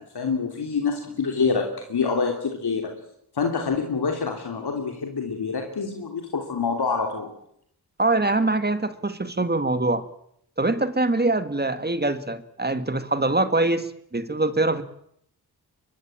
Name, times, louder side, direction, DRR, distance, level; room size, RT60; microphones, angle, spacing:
voice 1, 0.0-2.9 3.3-7.3, left 5 dB, 80° left, 3 dB, 3.2 m, -26 dB
voice 2, 8.0-10.1 10.6-14.8, right 2 dB, 25° right, 11 dB, 1.9 m, -23 dB
23.5 x 22.5 x 8.8 m, 0.73 s
wide cardioid pair, 85°, 38 cm